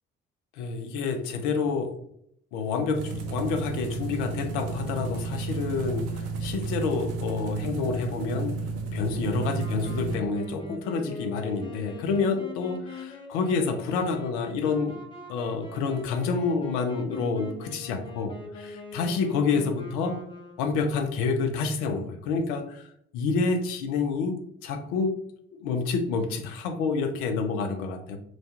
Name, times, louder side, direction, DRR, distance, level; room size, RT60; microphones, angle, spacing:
voice 1, 0.6-1.9 2.5-8.6 8.9-15.0 15.3-20.2 20.6-22.9 23.1-25.1 25.6-28.2, left 4 dB, 70° left, 6 dB, 0.5 m, -28 dB
sound 1, 2.9-10.2, right 4 dB, 55° right, 0.5 m, -32 dB
Wind instrument woodwind instrument, 9.3-21.0, left 2 dB, 15° left, 0.5 m, -43 dB
2.2 x 2.2 x 2.7 m, 0.70 s
figure-of-eight pair, 45°, 32 cm